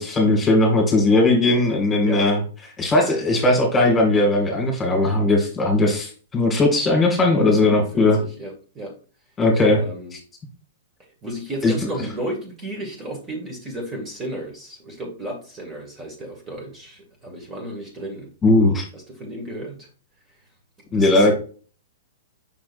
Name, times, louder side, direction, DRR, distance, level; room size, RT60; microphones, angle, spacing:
voice 1, 0.0-2.4 2.8-8.2 9.4-9.8 11.6-11.7 18.4-18.8 20.9-21.3, left 2 dB, 15° left, 2 dB, 2.4 m, -18 dB
voice 2, 7.3-8.9 9.7-10.1 11.2-18.3 18.9-19.9 20.9-21.3, right 1 dB, 20° right, 0 dB, 2.2 m, -33 dB
6.1 x 5.9 x 2.6 m, 0.38 s
figure-of-eight pair, 110°, 0 cm